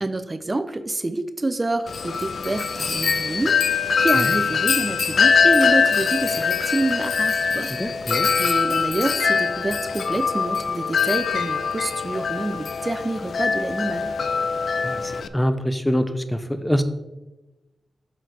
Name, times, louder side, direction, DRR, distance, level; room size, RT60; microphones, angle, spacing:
voice 1, 0.0-7.7 8.4-14.2, right 2 dB, 30° right, 10 dB, 0.5 m, -27 dB
Wind chime, 1.9-15.3, left 5 dB, 70° left, 0.3 m, -22 dB
voice 2, 7.8-8.3 14.8-16.8, equal, 10° left, 10 dB, 0.6 m, -24 dB
7.4 x 6.3 x 3.4 m, 1.1 s
cardioid pair, 55°, 0 cm